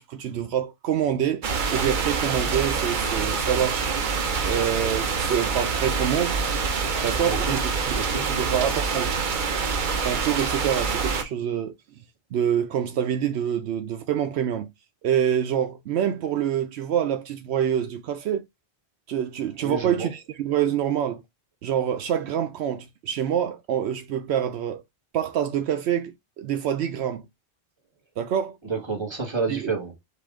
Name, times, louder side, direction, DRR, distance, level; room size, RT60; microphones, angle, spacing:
voice 1, 0.0-1.4 1.7-3.9 4.4-6.4 7.0-9.2 10.0-11.7 12.3-14.7 15.0-18.4 19.1-21.2 21.6-24.8 25.1-27.2 28.2-28.6 29.5-29.7, right 9 dB, 80° right, 0.8 m, -26 dB
sound 1, 1.4-11.2, right 5 dB, 50° right, 0.8 m, -26 dB
voice 2, 7.2-7.6 7.9-8.3 19.6-20.1 28.7-29.9, right 4 dB, 25° right, 1.4 m, -29 dB
5.6 x 2.5 x 3.6 m
omnidirectional pair, 1.1 m